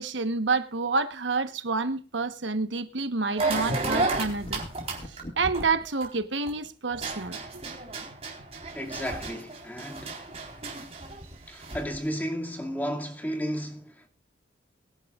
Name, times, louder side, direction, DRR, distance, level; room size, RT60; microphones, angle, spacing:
voice 1, 0.0-4.6 5.1-7.4, right 4 dB, 85° right, 1.2 m, -28 dB
sound 1, 3.4-6.5 6.9-12.0, right 3 dB, 35° right, 4.0 m, -33 dB
sound 2, 3.6-5.9, left 1 dB, 35° left, 1.9 m, -37 dB
voice 2, 8.7-10.2 11.5-14.1, equal, 10° left, 2.3 m, -33 dB
23.0 x 11.0 x 2.4 m
head